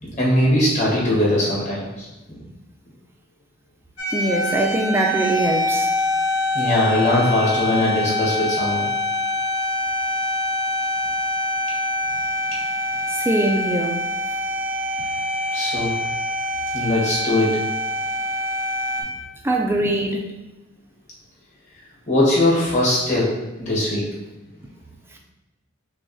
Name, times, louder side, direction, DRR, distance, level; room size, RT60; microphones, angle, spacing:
voice 1, 0.0-2.1 6.5-8.9 15.5-15.9 16.7-17.6 22.1-24.1, left 1 dB, 35° left, 1.4 m, -20 dB
sound 1, 4.0-19.0, left 1 dB, 80° left, 1.1 m, -25 dB
voice 2, 4.1-5.9 13.1-14.1 19.4-20.3, right 1 dB, 10° right, 0.3 m, -22 dB
6.0 x 2.3 x 2.7 m
head